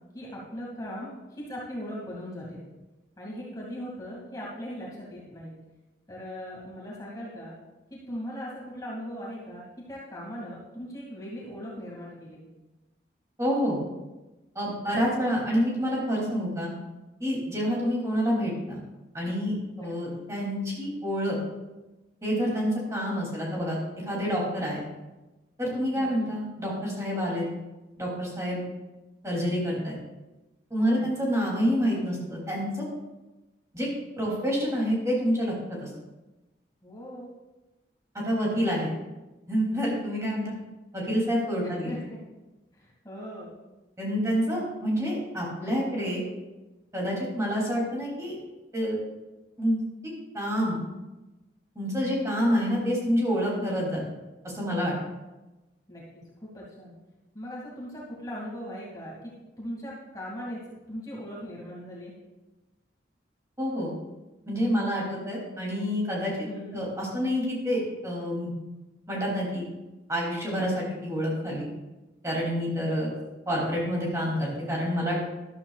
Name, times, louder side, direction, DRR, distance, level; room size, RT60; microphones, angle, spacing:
voice 1, 0.1-2.6 3.2-5.5 6.1-7.5 7.9-12.5 19.8-20.1 26.0-26.3 30.8-31.1 36.8-37.3 41.6-42.2 42.7-43.5 55.9-56.9 57.3-60.6 60.9-62.1 66.4-66.8 72.8-72.9, equal, 20° left, -5 dB, 2.4 m, -39 dB
voice 2, 13.4-13.8 14.5-16.7 17.2-18.8 19.1-21.4 22.2-23.8 24.0-24.8 25.6-27.5 28.0-28.6 29.2-30.0 30.7-32.8 33.7-33.9 34.2-35.9 38.1-38.9 39.5-40.5 40.9-41.9 44.0-46.2 46.9-48.4 48.7-49.0 49.6-49.8 50.3-50.8 51.7-54.0 54.5-54.9 63.6-63.9 64.5-66.3 66.7-68.5 69.1-69.7 70.1-71.6 72.2-73.1 73.5-75.2, equal, 15° right, -4 dB, 3.0 m, -28 dB
13.0 x 12.5 x 2.4 m, 1.1 s
head